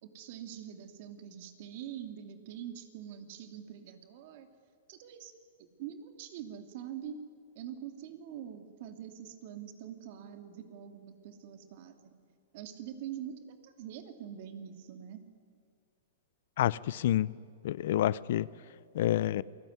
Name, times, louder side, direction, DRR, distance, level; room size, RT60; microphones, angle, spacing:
voice 1, 0.0-4.5 4.9-5.3 5.6-7.2 7.5-12.1 12.5-15.2, right 9 dB, 55° right, 2.8 m, -44 dB
voice 2, 16.6-17.3 17.6-18.5 18.9-19.4, left 12 dB, 65° left, 0.6 m, -28 dB
27.5 x 20.0 x 9.5 m
hypercardioid pair, 140°, 0 cm